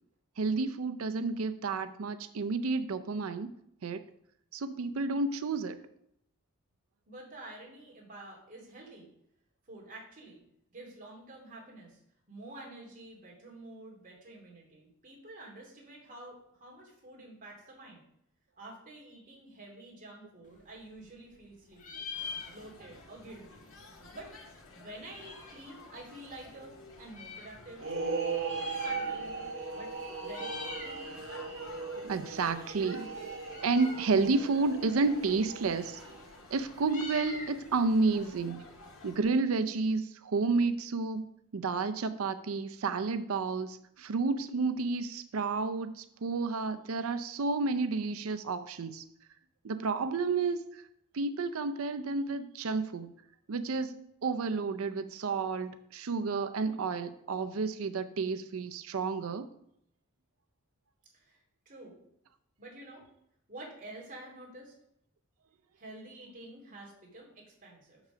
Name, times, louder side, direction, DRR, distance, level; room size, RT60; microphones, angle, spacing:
voice 1, 0.4-3.5 3.8-4.0 4.5-5.8 31.7-33.1 33.6-36.0 36.5-38.6 39.0-49.0 49.6-50.8 51.1-53.1 53.5-54.0 54.2-59.5, right 4 dB, 90° right, 11 dB, 0.5 m, -31 dB
voice 2, 7.1-9.1 9.7-10.4 10.7-12.0 12.3-18.0 18.6-22.0 22.3-23.6 24.1-24.3 24.7-27.8 28.6-29.3 29.7-29.9 30.2-30.8 32.8-33.7 61.1-62.0 62.6-63.0 63.5-64.7 65.7-68.0, right 2 dB, 40° right, -2 dB, 2.7 m, -49 dB
Meow, 20.5-21.5 21.7-23.0 23.3-23.4 23.6-25.7 26.3-27.5 28.3-29.5 29.7-30.0 30.2-31.0 31.4-39.2, left 4 dB, 40° left, 1.4 m, -45 dB
sound 1, 22.1-39.2, left 3 dB, 80° left, 1.8 m, -52 dB
sound 2, 27.8-36.3, right 4 dB, 70° right, 1.4 m, -38 dB
6.6 x 6.1 x 5.0 m, 0.74 s
head